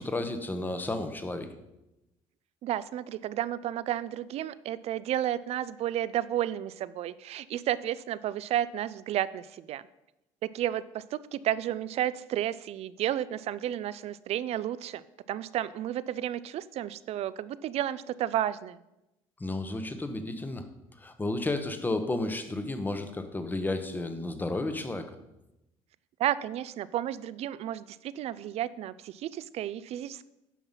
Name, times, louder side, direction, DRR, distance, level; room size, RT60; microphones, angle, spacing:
voice 1, 0.0-1.5 19.4-20.7 21.0-25.1, left 2 dB, 15° left, 8 dB, 1.0 m, -32 dB
voice 2, 2.6-9.8 10.4-18.8 26.2-30.2, right 12 dB, 60° right, 17 dB, 0.4 m, -32 dB
9.2 x 5.8 x 5.6 m, 0.93 s
cardioid pair, 105°, 12 cm